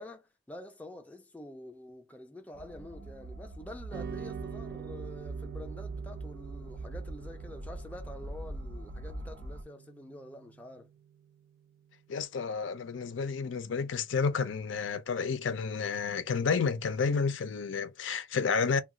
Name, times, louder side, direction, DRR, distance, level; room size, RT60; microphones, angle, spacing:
voice 1, 0.0-10.9, left 1 dB, 10° left, 0.4 m, -47 dB
sound 1, 2.5-9.6, right 2 dB, 90° right, 0.7 m, -42 dB
sound 2, 3.9-12.4, right 7 dB, 55° right, 0.4 m, -47 dB
voice 2, 12.1-18.8, left 5 dB, 75° left, 0.5 m, -30 dB
2.3 x 2.2 x 3.8 m
head